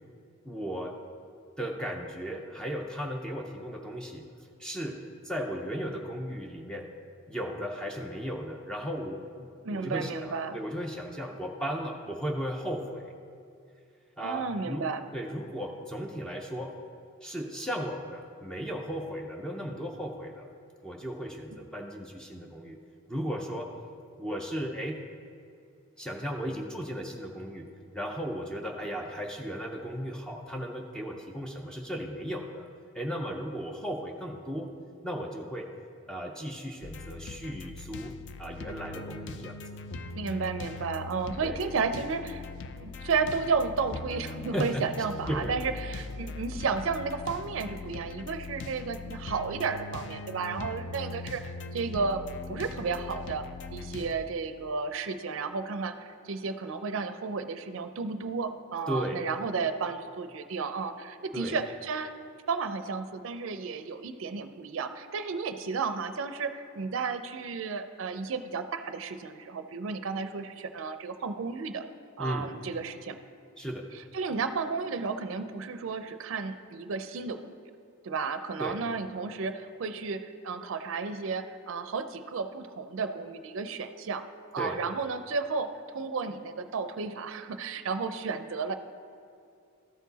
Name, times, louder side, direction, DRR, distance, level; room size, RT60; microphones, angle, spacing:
voice 1, 0.4-0.9 1.6-4.2 4.6-5.0 5.2-6.9 7.3-13.1 14.2-14.9 15.1-16.7 17.2-20.5 20.8-22.8 23.1-23.7 24.2-25.0 26.0-27.6 27.9-32.7 32.9-34.7 35.0-35.7 36.1-38.1 38.4-39.6 41.4-41.6 44.5-44.9 45.3-45.5 58.9-59.2 61.3-61.6 72.2-72.5 73.6-73.9 78.6-78.8 84.6-84.8, equal, 5° left, 1 dB, 0.5 m, -35 dB
voice 2, 9.6-10.6 14.2-15.0 40.2-42.4 42.7-52.2 52.5-53.4 53.7-62.1 62.5-71.8 72.2-73.2 74.1-77.5 78.0-84.2 84.5-88.7, right 4 dB, 70° right, 9 dB, 0.4 m, -33 dB
sound 1, 36.8-54.1, left 3 dB, 60° left, 0.4 m, -41 dB
13.0 x 4.7 x 4.0 m, 2.4 s
head